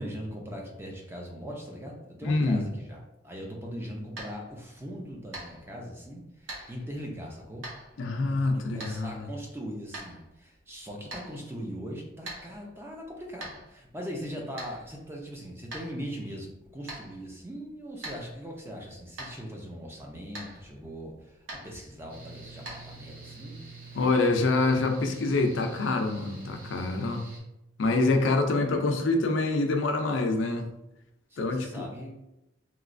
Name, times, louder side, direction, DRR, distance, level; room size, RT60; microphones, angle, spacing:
voice 1, 0.0-7.7 8.2-21.4 21.6-24.0 28.1-28.3 31.3-32.1, equal, 10° right, -1 dB, 0.5 m, -40 dB
voice 2, 2.2-2.7 8.0-9.3 23.9-27.2 27.8-30.7 31.4-31.9, left 3 dB, 80° left, 5 dB, 0.5 m, -26 dB
sound 1, 3.6-23.3, right 1 dB, 90° right, 0.8 m, -47 dB
Mechanical fan, 22.1-27.4, right 3 dB, 50° right, 1.0 m, -46 dB
3.1 x 3.0 x 2.5 m, 0.91 s
head